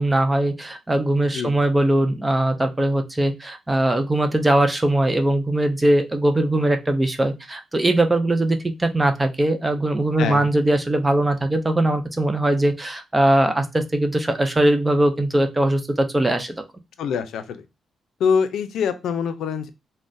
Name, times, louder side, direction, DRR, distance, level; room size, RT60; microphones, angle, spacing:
voice 1, 0.0-16.5, right 1 dB, 10° right, 7 dB, 0.3 m, -20 dB
voice 2, 17.0-17.6 18.2-19.7, left 6 dB, 80° left, 9 dB, 0.4 m, -24 dB
3.7 x 2.1 x 2.5 m, 0.24 s
wide cardioid pair, 165°, 0 cm